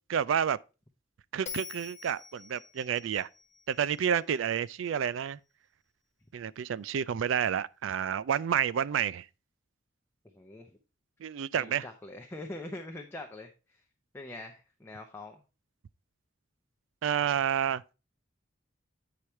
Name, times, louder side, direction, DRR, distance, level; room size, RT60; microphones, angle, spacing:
voice 1, 0.1-0.6 1.3-3.3 3.7-5.4 6.3-9.3 11.2-11.9 17.0-17.8, right 8 dB, 75° right, 0.3 m, -29 dB
Bell, 1.5-4.7, left 8 dB, 35° left, 1.2 m, -46 dB
voice 2, 10.3-10.7 11.5-13.8 14.1-15.4, left 2 dB, 10° left, 0.6 m, -43 dB
8.6 x 4.8 x 4.3 m
head